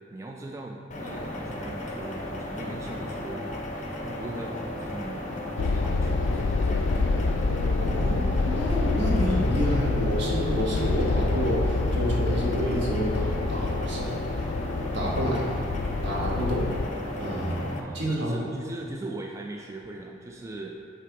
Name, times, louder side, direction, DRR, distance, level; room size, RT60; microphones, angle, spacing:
voice 1, 0.1-3.5 3.9-5.3 5.6-7.2 17.8-20.7, right 2 dB, 15° right, 0 dB, 0.3 m, -40 dB
sound 1, 0.9-17.8, left 1 dB, 40° left, 0.7 m, -35 dB
sound 2, 5.6-16.9, left 3 dB, 80° left, 0.4 m, -27 dB
voice 2, 7.8-14.5 14.9-15.6 16.0-16.7 17.2-18.4, equal, 65° right, -4 dB, 1.3 m, -29 dB
7.9 x 3.4 x 4.8 m, 2.6 s
head